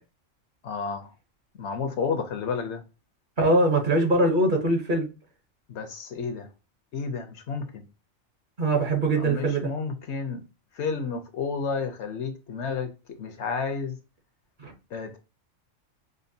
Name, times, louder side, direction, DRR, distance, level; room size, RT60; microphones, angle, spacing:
voice 1, 0.6-1.1 1.6-2.8 5.7-6.5 6.9-7.8 9.0-10.4 10.7-14.0 14.9-15.2, left 5 dB, 65° left, 0.8 m, -31 dB
voice 2, 3.4-5.1 8.6-9.7 14.6-14.7, right 2 dB, 45° right, 0.9 m, -22 dB
5.1 x 2.1 x 2.6 m
omnidirectional pair, 1.3 m